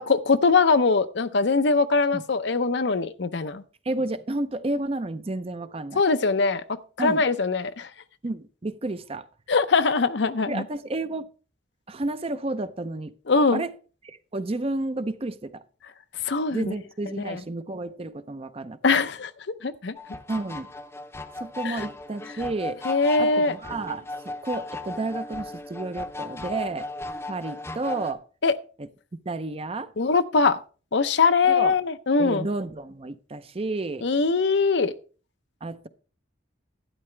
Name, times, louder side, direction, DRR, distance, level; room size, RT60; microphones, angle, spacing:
voice 1, 0.0-3.6 6.0-6.6 7.0-7.9 9.5-10.6 13.3-13.6 16.2-16.7 17.1-17.4 18.8-19.3 19.6-19.9 21.6-21.8 22.8-23.6 28.4-28.5 30.0-30.6 30.9-32.5 34.0-34.9, left 4 dB, 65° left, 0.7 m, -22 dB
voice 2, 3.8-6.0 7.0-7.2 8.2-9.3 10.5-11.3 11.9-13.1 13.5-13.7 14.0-15.6 16.5-19.0 20.3-20.7 21.4-22.8 23.2-26.9 27.3-28.2 28.8-28.9 29.3-29.9 31.4-31.8 32.2-34.1 35.6-35.9, right 2 dB, 30° right, 0.6 m, -31 dB
sound 1, 20.0-28.1, left 2 dB, 15° left, 0.7 m, -36 dB
12.0 x 9.7 x 3.3 m
head